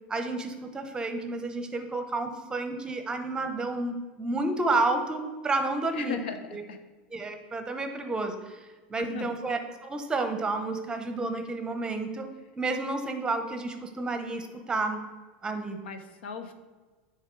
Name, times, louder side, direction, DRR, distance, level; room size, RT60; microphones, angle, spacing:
voice 1, 0.1-6.2 6.5-6.6 7.1-8.6 8.9-12.3 12.6-15.0 15.4-15.8, right 2 dB, 15° right, 7 dB, 0.8 m, -30 dB
voice 2, 5.9-6.8 9.0-9.3 15.8-16.5, left 6 dB, 85° left, 8 dB, 0.8 m, -38 dB
9.0 x 3.6 x 4.5 m, 1.3 s
supercardioid pair, 120°, 5 cm